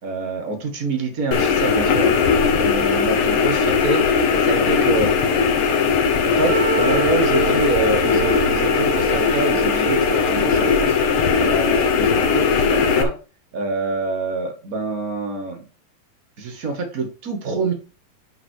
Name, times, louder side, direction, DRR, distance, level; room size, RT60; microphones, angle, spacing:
voice 1, 0.0-2.2 2.6-4.0 4.4-5.1 6.2-11.0 11.4-13.1 13.5-15.6 16.4-17.7, right 3 dB, 40° right, 5 dB, 1.3 m, -26 dB
sound 1, 1.3-13.0, left 6 dB, 75° left, 1.2 m, -19 dB
Wind instrument woodwind instrument, 6.4-11.6, right 4 dB, 75° right, 2.2 m, -27 dB
10.5 x 3.8 x 4.8 m, 0.34 s
omnidirectional pair, 4.1 m